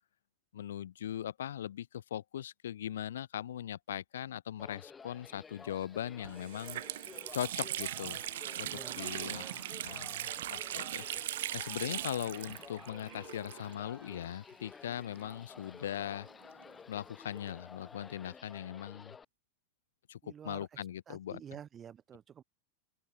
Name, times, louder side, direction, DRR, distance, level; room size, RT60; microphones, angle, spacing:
voice 1, 0.5-6.8 7.3-8.2 8.6-16.3 16.9-19.2 20.1-21.6, left 10 dB, 75° left, 1.1 m, -40 dB
Pfrederennen Horses Race, 4.6-19.2, left 5 dB, 20° left, 2.1 m, -53 dB
Water tap faucet, 5.8-5.9 6.2-14.0 14.2-14.3 15.2-16.7, right 13 dB, 70° right, 1.6 m, -40 dB
voice 2, 8.6-9.5 20.2-20.7 21.1-22.4, right 8 dB, 30° right, 3.9 m, -50 dB
open air
hypercardioid pair, 100°, 0 cm